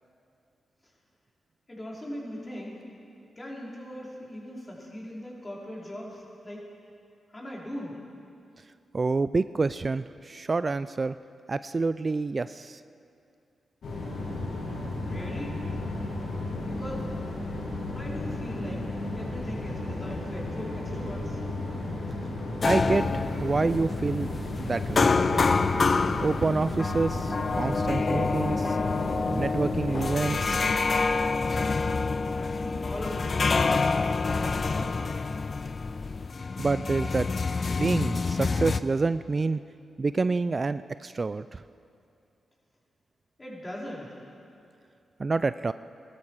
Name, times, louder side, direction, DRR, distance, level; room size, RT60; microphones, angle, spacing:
voice 1, 1.7-2.8 3.4-6.6 7.3-8.0 15.0-15.6 16.6-17.1 17.9-18.8 19.1-21.4 32.3-33.4 34.0-35.2 43.4-44.1, left 1 dB, 30° left, -4 dB, 4.6 m, -39 dB
voice 2, 8.9-11.1 11.5-12.8 22.6-24.3 24.6-25.1 26.2-28.8 29.3-30.6 36.6-37.3 37.8-39.6 40.0-41.6 45.2-45.7, right 3 dB, 40° right, 14 dB, 0.3 m, -27 dB
sound 1, 13.8-30.8, left 2 dB, 65° left, 2.5 m, -33 dB
sound 2, 22.6-38.8, left 4 dB, 50° left, 0.5 m, -27 dB
18.0 x 12.5 x 4.9 m, 2.5 s
supercardioid pair, 40°, 0 cm